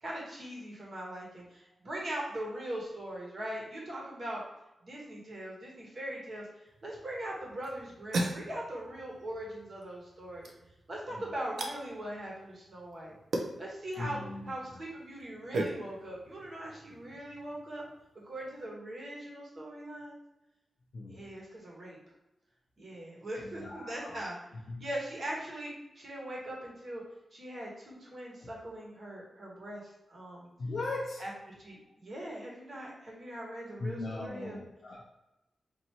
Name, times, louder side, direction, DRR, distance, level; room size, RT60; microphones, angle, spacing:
voice 1, 0.0-4.4 4.8-10.5 10.9-13.1 13.6-14.2 14.4-17.8 18.2-20.2 21.1-22.0 22.8-24.4 24.8-27.0 27.3-30.5 31.2-31.3 31.6-34.6, right 1 dB, 45° right, -3 dB, 1.2 m, -41 dB
sound 1, 6.7-18.7, right 2 dB, 85° right, 0.5 m, -40 dB
voice 2, 14.0-14.8 20.9-21.3 23.4-24.3 24.7-24.9 28.4-28.5 30.6-31.3 33.8-35.0, left 2 dB, 55° left, -3 dB, 0.5 m, -39 dB
4.5 x 2.6 x 2.8 m, 0.93 s
wide cardioid pair, 170°, 0 cm